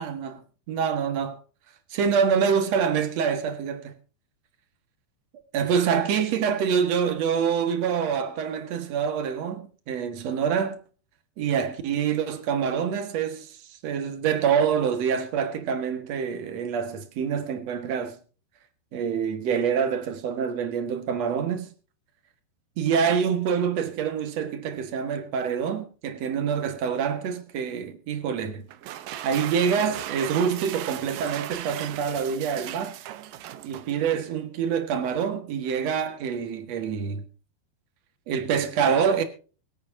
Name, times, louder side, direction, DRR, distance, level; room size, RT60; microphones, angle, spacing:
voice 1, 0.0-1.4 1.9-4.0 5.5-10.8 11.4-18.2 18.9-21.7 22.8-28.7 29.2-33.0 33.6-37.2 38.3-39.2, right 7 dB, 55° right, 2.0 m, -26 dB
sound 1, 28.7-34.3, right 12 dB, 85° right, 1.9 m, -37 dB
24.5 x 8.7 x 2.7 m
omnidirectional pair, 5.1 m